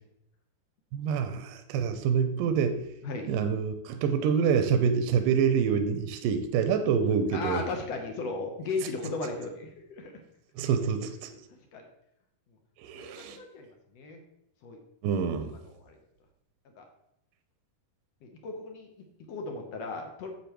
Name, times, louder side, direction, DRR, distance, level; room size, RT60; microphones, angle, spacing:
voice 1, 0.9-2.8 3.3-7.6 10.6-11.3 12.8-13.4 15.0-15.5, right 7 dB, 80° right, 8 dB, 2.2 m, -26 dB
voice 2, 7.3-10.1 11.7-11.8 12.9-13.7 13.9-14.2 14.6-14.8 15.6-16.0 16.8-16.9 18.2-18.9 19.3-20.3, left 3 dB, 70° left, 3 dB, 1.6 m, -36 dB
8.4 x 7.7 x 3.0 m, 0.81 s
omnidirectional pair, 4.0 m